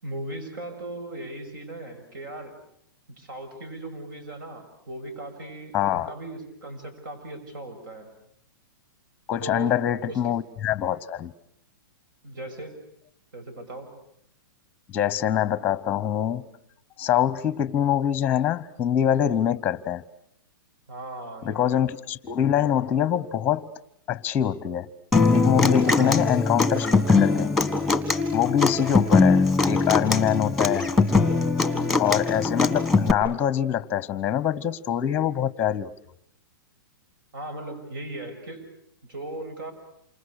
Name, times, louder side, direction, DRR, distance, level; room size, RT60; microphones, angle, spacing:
voice 1, 0.0-2.5 3.1-8.1 9.4-9.7 10.1-10.3 12.2-12.7 13.3-13.9 20.9-21.9 25.8-26.2 31.7-32.0 37.3-38.6 39.1-39.7, right 1 dB, 65° right, 6.8 m, -38 dB
voice 2, 5.7-6.1 9.3-11.3 14.9-16.4 17.0-20.0 21.4-23.7 24.1-24.9 25.3-27.5 28.3-30.9 32.0-35.9, left 10 dB, 15° left, 1.0 m, -24 dB
Human voice / Acoustic guitar, 25.1-33.1, left 3 dB, ahead, 1.8 m, -21 dB
28.5 x 26.5 x 6.5 m
hypercardioid pair, 150°, 12 cm